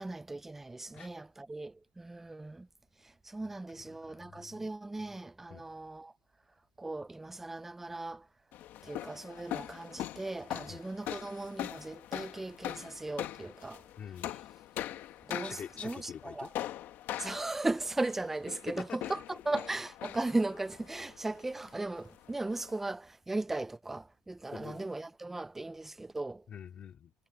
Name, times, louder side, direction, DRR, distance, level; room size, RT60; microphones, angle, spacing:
voice 1, 0.0-2.7 3.3-6.1 6.8-8.3 8.8-13.8 15.3-16.5 17.2-19.2 19.5-26.4, right 2 dB, 5° right, 0.3 m, -37 dB
voice 2, 3.9-4.7 5.5-5.6 10.7-10.8 14.0-14.3 15.4-16.5 18.8-19.4 24.5-24.9 26.5-27.1, left 8 dB, 30° left, 3.4 m, -46 dB
sound 1, 8.5-22.8, left 13 dB, 45° left, 1.4 m, -42 dB
cardioid pair, 175°, 5 cm